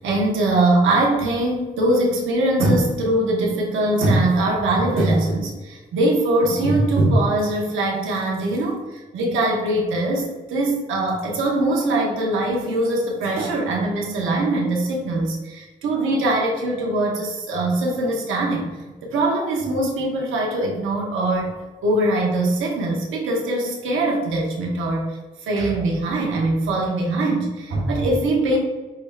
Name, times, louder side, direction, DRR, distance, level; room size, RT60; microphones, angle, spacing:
voice 1, 0.0-18.7 19.0-21.5 21.8-25.1 25.4-28.6, right 2 dB, 90° right, -2 dB, 1.0 m, -22 dB
6.0 x 3.3 x 2.3 m, 1.2 s
supercardioid pair, 50°, 20 cm